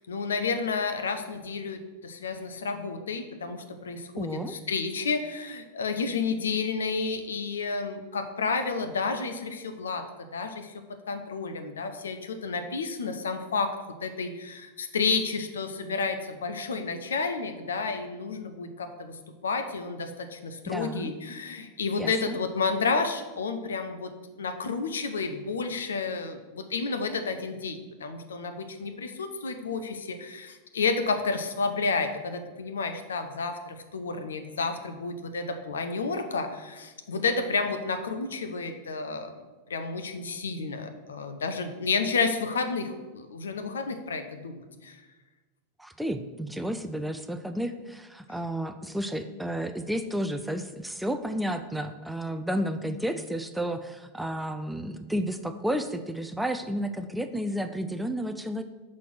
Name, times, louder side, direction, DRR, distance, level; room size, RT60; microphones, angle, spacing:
voice 1, 0.0-13.8 14.0-24.1 24.4-39.3 39.7-45.0, left 4 dB, 65° left, 8 dB, 0.6 m, -31 dB
voice 2, 4.2-4.6 20.7-21.1 22.0-22.4 45.8-58.6, equal, 5° right, 8 dB, 0.4 m, -32 dB
5.6 x 4.2 x 6.2 m, 1.2 s
figure-of-eight pair, 90°, 0 cm